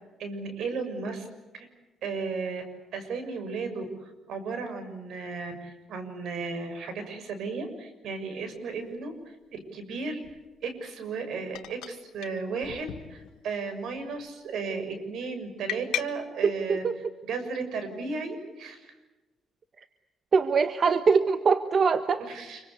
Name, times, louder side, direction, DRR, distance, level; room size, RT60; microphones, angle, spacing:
voice 1, 0.2-1.3 1.5-1.7 2.0-2.6 2.9-10.2 10.6-16.9 17.2-18.9 22.2-22.6, right 4 dB, 75° right, 8 dB, 6.6 m, -35 dB
sound 1, 8.5-8.6 10.2-10.5 11.5-12.0 12.2-12.3 12.6-13.5 13.9-14.2 15.7-16.0, left 13 dB, 90° left, 1.5 m, -36 dB
voice 2, 16.4-16.9 20.3-22.2, right 5 dB, 45° right, 10 dB, 1.3 m, -23 dB
27.5 x 24.5 x 8.4 m, 1.1 s
cardioid pair, 90°, 0 cm